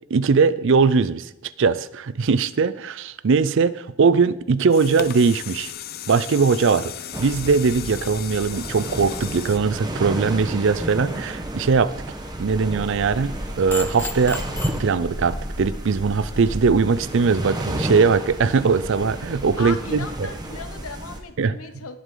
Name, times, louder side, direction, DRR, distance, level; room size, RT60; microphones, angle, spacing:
voice 1, 0.1-5.7 6.1-6.9 7.2-11.9 12.4-14.4 14.8-20.3 21.4-21.6, right 5 dB, 55° right, 17 dB, 0.4 m, -20 dB
sound 1, 4.4-10.7 11.2-11.3, left 9 dB, 45° left, 0.5 m, -36 dB
sound 2, 7.1-21.2, right 1 dB, 20° right, 1.1 m, -32 dB
sound 3, 12.4-16.7, left 1 dB, 10° left, 0.7 m, -33 dB
voice 2, 19.6-22.0, left 4 dB, 75° left, 9 dB, 1.1 m, -36 dB
19.0 x 8.1 x 3.9 m, 0.90 s
head